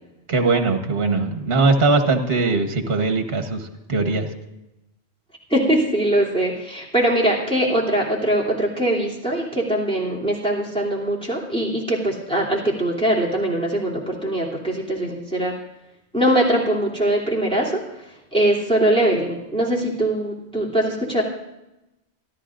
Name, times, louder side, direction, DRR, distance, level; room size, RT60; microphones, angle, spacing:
voice 1, 0.3-4.3, right 3 dB, 60° right, 6 dB, 1.4 m, -20 dB
voice 2, 5.5-15.5 16.1-21.2, right 1 dB, 5° left, -4 dB, 2.9 m, -22 dB
26.0 x 12.0 x 2.5 m, 0.93 s
omnidirectional pair, 1.1 m